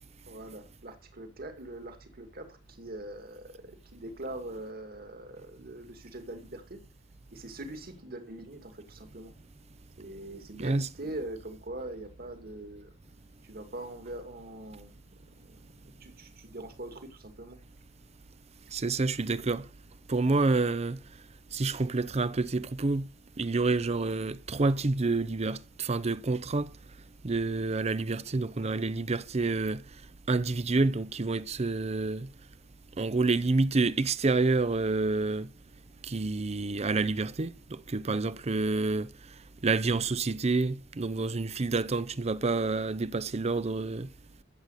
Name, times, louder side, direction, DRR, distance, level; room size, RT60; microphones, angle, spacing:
voice 1, 0.3-6.8 7.3-9.3 10.0-12.9 13.4-17.6, right 1 dB, 50° right, 2.5 m, -43 dB
voice 2, 18.7-19.7 20.1-21.0 21.5-23.1 23.4-26.7 27.2-29.8 30.3-32.3 33.0-35.5 36.0-39.1 39.6-44.1, right 3 dB, 35° right, 0.6 m, -28 dB
13.5 x 7.8 x 6.5 m
head